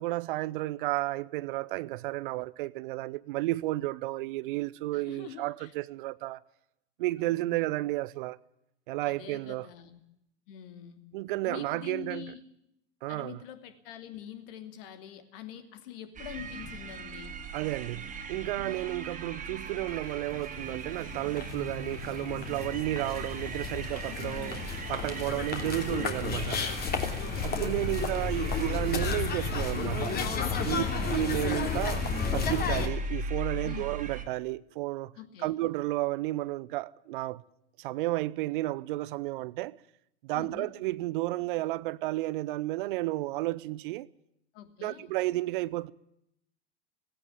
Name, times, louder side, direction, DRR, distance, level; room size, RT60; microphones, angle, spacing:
voice 1, 0.0-6.4 7.0-8.4 8.9-9.7 11.1-12.3 13.0-13.4 17.5-24.6 24.9-26.7 27.4-30.2 30.6-30.8 31.1-35.1 35.4-37.4 37.8-39.8 40.2-44.1 44.8-45.9, right 18 dB, 50° right, 0.7 m, -32 dB
voice 2, 4.9-5.7 7.2-7.7 9.0-10.0 10.5-11.0 11.5-12.4 13.1-17.3 24.0-24.7 27.0-27.6 30.7-31.1 33.6-34.0 35.2-35.5 40.3-40.7 44.5-45.1, left 10 dB, 55° left, 2.9 m, -45 dB
sound 1, 16.1-34.2, right 2 dB, 25° right, 2.9 m, -38 dB
sound 2, 20.1-20.2 20.4-32.9, left 6 dB, 30° left, 3.0 m, -33 dB
17.5 x 16.5 x 9.6 m
figure-of-eight pair, 90°, 34 cm